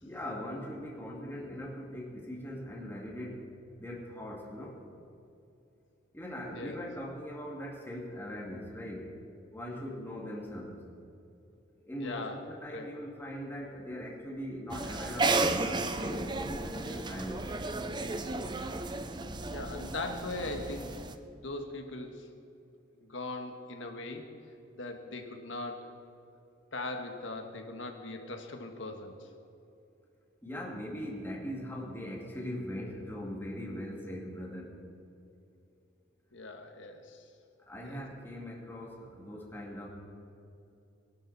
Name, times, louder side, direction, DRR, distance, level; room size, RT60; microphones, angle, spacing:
voice 1, 0.0-3.5 3.8-4.8 6.1-9.1 9.5-10.8 11.8-17.6 30.4-34.8 37.7-39.9, equal, 10° left, -2 dB, 2.3 m, -40 dB
voice 2, 6.5-6.8 12.0-12.4 12.7-12.9 19.5-21.0 21.4-22.3 23.0-24.3 24.7-25.9 26.7-29.3 36.3-37.3 37.8-38.0, left 2 dB, 85° left, 4 dB, 1.7 m, -40 dB
sound 1, 14.7-21.1, right 3 dB, 25° right, 0.6 m, -33 dB
22.5 x 11.5 x 4.3 m, 2.7 s
head